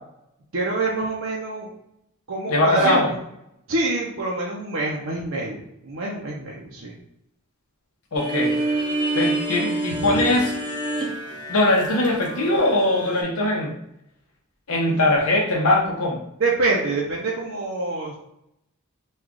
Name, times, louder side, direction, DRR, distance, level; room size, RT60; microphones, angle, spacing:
voice 1, 0.5-1.7 2.3-3.2 3.7-6.9 9.9-10.1 14.9-15.1 16.4-18.2, right 2 dB, 65° right, -3 dB, 0.6 m, -25 dB
voice 2, 2.5-3.1 8.1-8.6 9.1-10.5 11.5-13.7 14.7-16.2, left 1 dB, 75° left, 0 dB, 0.9 m, -21 dB
sound 1, 8.1-13.2, right 2 dB, 20° right, 0.6 m, -27 dB
3.1 x 2.3 x 3.7 m, 0.80 s
head